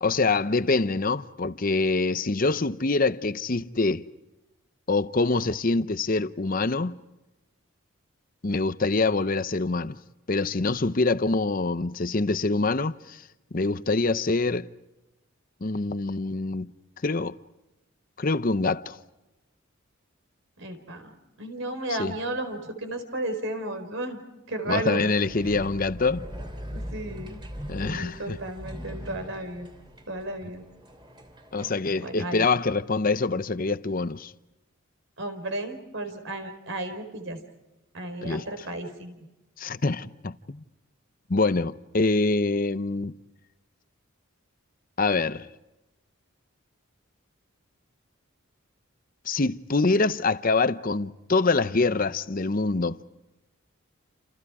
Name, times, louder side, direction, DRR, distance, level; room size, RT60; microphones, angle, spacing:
voice 1, 0.0-4.1 4.9-7.0 8.4-10.0 10.3-13.2 13.5-14.7 15.6-16.7 17.0-17.4 18.2-19.0 22.0-22.1 24.7-26.3 27.7-28.4 31.5-34.3 38.2-38.4 39.6-40.6 41.3-43.2 45.0-45.5 49.3-53.0, left 3 dB, 40° left, 0.8 m, -25 dB
voice 2, 20.6-24.2 24.5-25.1 26.7-27.4 27.8-29.7 30.1-30.6 32.0-32.5 35.2-37.4 37.9-39.1, right 2 dB, 65° right, 4.6 m, -33 dB
sound 1, 25.2-32.0, equal, 20° right, 3.0 m, -40 dB
29.5 x 28.5 x 4.9 m
head